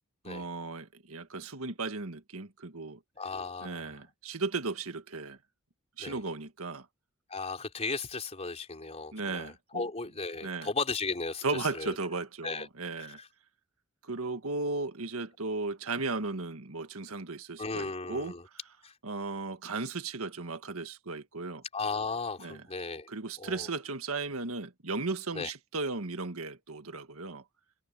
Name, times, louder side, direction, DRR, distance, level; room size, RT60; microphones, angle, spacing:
voice 1, 0.3-3.0 3.6-5.4 6.0-6.9 9.1-9.9 10.4-10.7 11.4-13.2 14.0-18.3 19.0-21.6 22.4-22.6 23.1-27.4, right 3 dB, 90° right, 1.7 m, -36 dB
voice 2, 3.2-3.8 6.0-6.2 7.3-11.9 12.4-12.7 13.0-13.3 17.6-18.4 18.8-18.9 21.7-23.1 23.4-23.7 25.3-25.5, left 4 dB, 30° left, 3.9 m, -36 dB
head